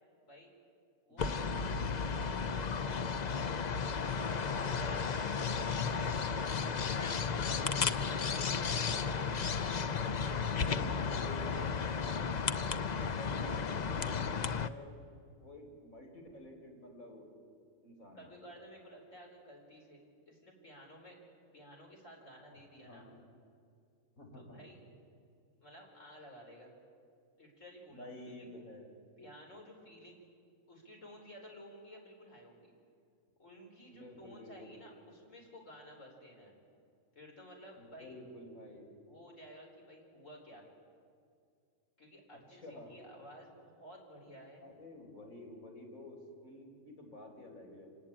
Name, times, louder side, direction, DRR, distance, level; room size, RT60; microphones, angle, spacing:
voice 1, 0.2-0.5 3.4-6.1 7.4-9.7 18.1-21.2 21.5-23.1 24.3-24.8 25.6-26.7 27.4-28.5 29.2-30.2 30.7-32.7 33.4-36.5 37.1-38.2 39.1-40.7 42.0-44.6, equal, 65° left, 0 dB, 5.1 m, -54 dB
voice 2, 1.1-2.1 7.4-7.8 10.5-12.3 12.9-14.9 15.4-17.3 17.8-18.4 22.5-23.2 24.2-24.6 27.9-28.9 33.9-34.8 37.8-38.9 42.5-43.0 44.6-47.9, left 1 dB, 85° left, 1 dB, 4.8 m, -50 dB
sound 1, 1.2-14.7, left 5 dB, 45° left, 0.6 m, -34 dB
26.5 x 19.0 x 8.9 m, 2.3 s
omnidirectional pair, 1.4 m